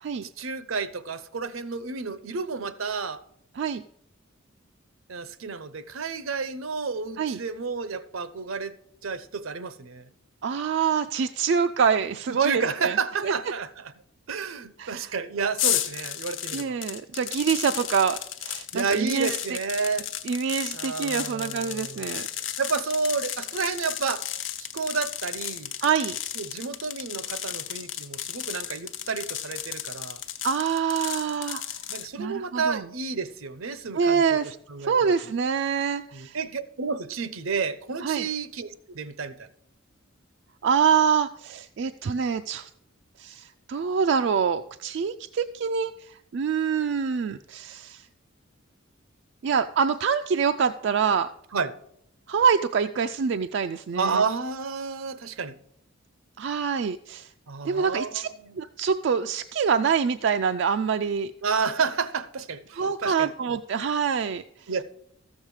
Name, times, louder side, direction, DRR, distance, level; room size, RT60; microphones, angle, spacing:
voice 1, 0.4-3.2 5.1-8.7 9.0-10.1 12.3-13.9 14.3-16.8 18.7-20.1 20.7-22.1 22.4-24.2 24.6-25.7 26.4-30.2 31.9-34.9 36.1-39.5 51.5-51.7 54.0-55.6 57.5-58.6 61.4-63.3 64.7-64.8, right 4 dB, 75° right, 0.7 m, -31 dB
voice 2, 10.4-13.0 13.2-13.3 14.8-15.1 16.5-19.6 20.3-22.3 25.8-26.2 30.4-31.6 32.2-32.8 33.9-34.5 34.8-36.4 38.0-38.3 40.6-42.7 43.2-48.1 49.4-51.3 52.3-54.2 56.4-57.3 57.6-58.3 58.6-61.3 62.7-64.7, right 6 dB, 55° right, 0.3 m, -25 dB
sound 1, 15.6-32.1, left 11 dB, 60° left, 0.8 m, -33 dB
13.5 x 7.3 x 4.8 m
head